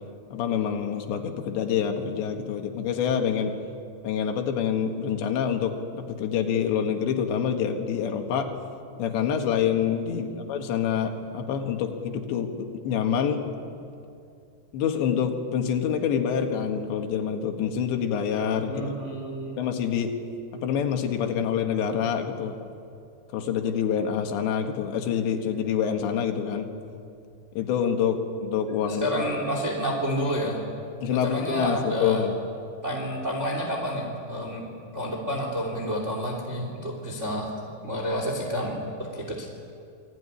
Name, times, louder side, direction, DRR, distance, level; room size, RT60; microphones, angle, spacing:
voice 1, 0.3-3.6 4.0-8.5 9.0-13.4 14.7-18.9 19.6-20.1 20.5-22.6 23.3-26.7 27.6-29.1 31.0-32.3, left 8 dB, 90° left, 4 dB, 4.0 m, -26 dB
voice 2, 10.1-10.4 18.7-19.6 28.9-30.6 31.1-32.2 32.8-34.6 34.9-37.5 37.8-38.8 39.1-39.5, equal, 20° right, 1 dB, 2.9 m, -29 dB
28.5 x 20.5 x 10.0 m, 2.5 s
omnidirectional pair, 4.9 m